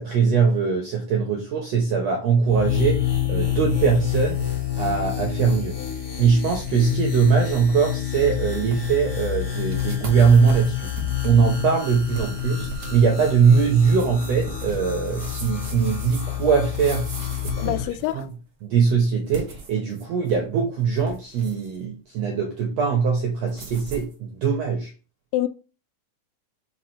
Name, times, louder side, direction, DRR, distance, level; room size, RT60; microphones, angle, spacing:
voice 1, 0.0-10.9 11.2-17.1 17.4-17.8 18.1-18.3 18.6-24.9, right 6 dB, 70° right, 1.6 m, -21 dB
sound 1, 2.4-17.8, left 11 dB, 45° left, 1.3 m, -28 dB
sound 2, 4.6-5.5 5.8-5.9 6.5-6.7 7.1-7.2 7.4-7.7 8.2-8.3 8.5-9.0 9.5-18.3 19.2-20.5 20.8-21.8 23.5-24.1, right 3 dB, 45° right, 1.5 m, -38 dB
voice 2, 17.6-18.3 25.3-25.5, left 14 dB, 80° left, 2.1 m, -25 dB
4.7 x 4.6 x 4.4 m
omnidirectional pair, 4.1 m